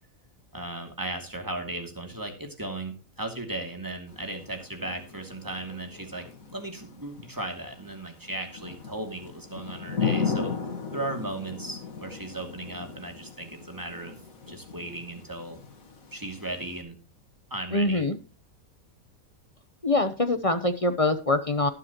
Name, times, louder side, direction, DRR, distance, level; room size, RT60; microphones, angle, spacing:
voice 1, 0.5-6.3 6.5-10.5 10.9-14.1 14.5-15.6 16.1-17.0 17.5-18.1, right 2 dB, 15° right, 4 dB, 2.5 m, -36 dB
Thunder / Rain, 4.1-16.8, left 5 dB, 75° left, 2.3 m, -36 dB
voice 2, 17.7-18.1 19.8-21.7, left 2 dB, 30° left, 10 dB, 0.8 m, -24 dB
18.5 x 7.5 x 3.0 m, 0.33 s
omnidirectional pair, 1.5 m